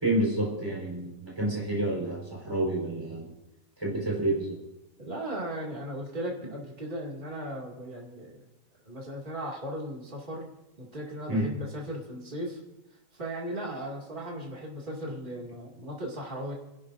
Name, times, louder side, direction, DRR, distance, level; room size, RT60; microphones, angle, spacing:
voice 1, 0.0-3.3 3.8-4.6 11.3-11.5, right 1 dB, 15° right, -4 dB, 4.5 m, -29 dB
voice 2, 5.0-8.4 8.8-10.5 10.8-12.6 13.2-16.5, equal, 35° right, -3 dB, 2.6 m, -37 dB
29.0 x 12.0 x 2.6 m, 0.94 s
omnidirectional pair, 1.5 m